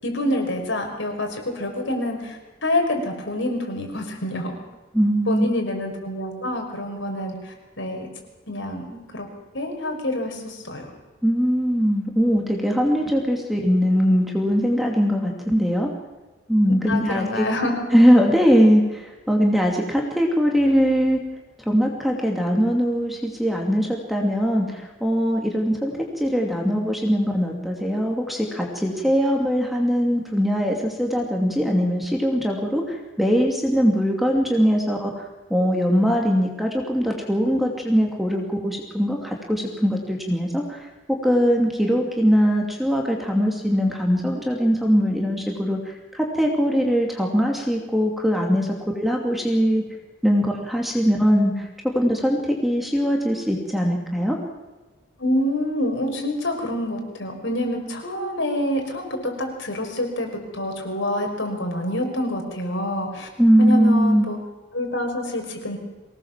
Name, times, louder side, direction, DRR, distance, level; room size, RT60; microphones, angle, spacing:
voice 1, 0.0-4.6 5.3-8.1 8.5-9.3 9.5-10.9 16.9-17.9 55.2-63.3 63.6-64.4 64.7-65.8, left 1 dB, 60° left, 3 dB, 5.4 m, -27 dB
voice 2, 4.9-5.5 11.2-15.9 16.5-17.5 17.9-21.2 21.6-40.9 41.2-49.8 50.2-51.7 51.9-54.4 63.4-64.3, equal, ahead, 1 dB, 2.6 m, -21 dB
24.5 x 18.5 x 7.4 m, 1.2 s
head